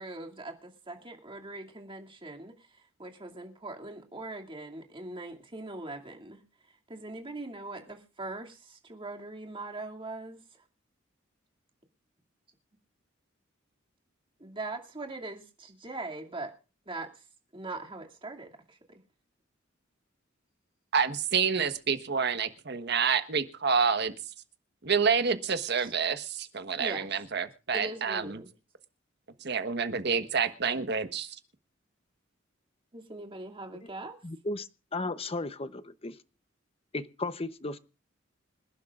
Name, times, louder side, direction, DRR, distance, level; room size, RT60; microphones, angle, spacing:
voice 1, 0.0-6.4 6.9-10.4 14.4-16.5 16.9-17.2 17.5-19.0 25.8-25.9 26.8-27.1 27.7-28.5 32.9-34.2, right 2 dB, 25° right, 2.6 m, -41 dB
voice 2, 20.9-24.1 24.8-28.4 29.4-31.4, right 6 dB, 55° right, 1.4 m, -28 dB
voice 3, 34.2-36.2 36.9-37.8, left 2 dB, 30° left, 0.8 m, -35 dB
26.5 x 11.5 x 2.5 m
head